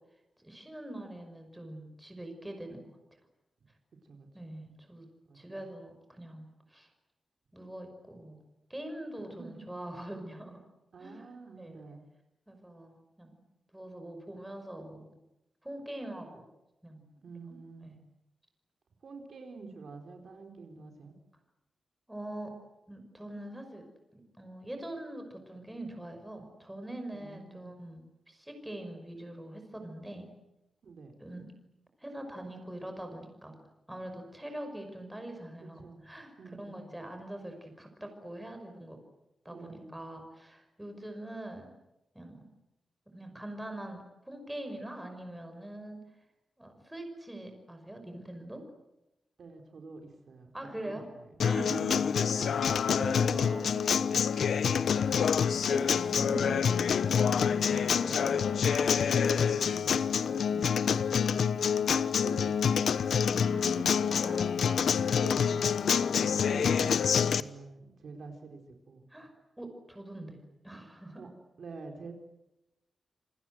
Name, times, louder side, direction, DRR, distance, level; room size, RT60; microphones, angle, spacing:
voice 1, 0.4-2.9 4.3-5.1 5.3-6.9 7.5-8.4 8.7-10.6 11.0-11.3 11.6-11.8 12.5-13.4 13.7-15.1 15.6-16.4 16.8-17.1 17.8-18.0 22.1-22.5 22.9-23.8 24.1-30.3 31.2-31.5 32.0-33.6 33.9-36.3 36.6-39.0 39.4-41.7 42.1-42.4 43.1-46.0 46.6-48.6 50.5-51.1 51.4-51.7 52.4-52.7 52.9-54.8 55.6-56.7 57.0-58.6 60.5-60.7 63.5-64.6 69.1-69.3 69.6-70.4 70.6-71.2, right 1 dB, 5° right, 5 dB, 5.8 m, -43 dB
voice 2, 4.0-4.5 5.2-5.4 9.4-9.7 10.9-12.0 17.2-18.0 19.0-21.2 27.1-27.7 30.8-31.2 35.6-36.9 39.5-40.0 49.4-50.5 50.8-52.5 52.9-53.1 58.5-60.5 61.3-63.2 64.6-69.1 71.2-71.3 71.6-72.1, right 4 dB, 60° right, 4 dB, 4.3 m, -47 dB
Acoustic guitar, 51.4-67.4, left 7 dB, 85° left, 1.0 m, -27 dB
28.0 x 25.0 x 7.9 m, 0.91 s
wide cardioid pair, 165°, 0 cm